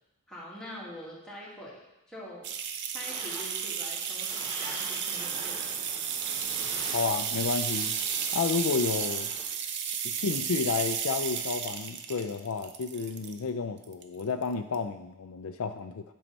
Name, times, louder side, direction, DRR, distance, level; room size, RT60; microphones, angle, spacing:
voice 1, 0.3-2.5 2.9-5.8, equal, 5° left, -7 dB, 2.2 m, -44 dB
sound 1, 2.4-13.4 13.8-14.4 14.7-14.8, right 8 dB, 50° right, 0.6 m, -33 dB
sound 2, 2.9-9.4, equal, 30° right, 2.5 m, -44 dB
voice 2, 6.9-8.0 8.3-9.3 10.0-16.0, left 5 dB, 70° left, 8 dB, 0.4 m, -31 dB
11.0 x 5.6 x 4.1 m, 0.91 s
head